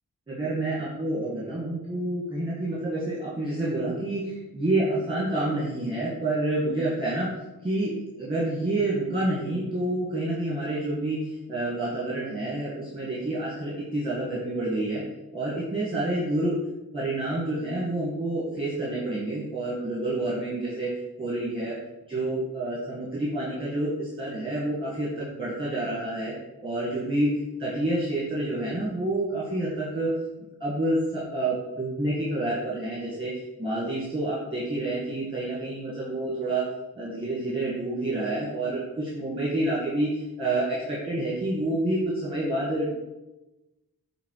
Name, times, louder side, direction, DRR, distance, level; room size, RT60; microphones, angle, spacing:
voice 1, 0.3-7.3 7.6-15.0 15.3-16.6 16.9-20.9 21.2-21.8 22.1-26.3 26.6-27.3 27.6-30.1 30.6-36.6 36.9-42.9, right 1 dB, 15° right, -8 dB, 1.9 m, -28 dB
7.6 x 3.5 x 4.8 m, 1.0 s
wide cardioid pair, 65°, 38 cm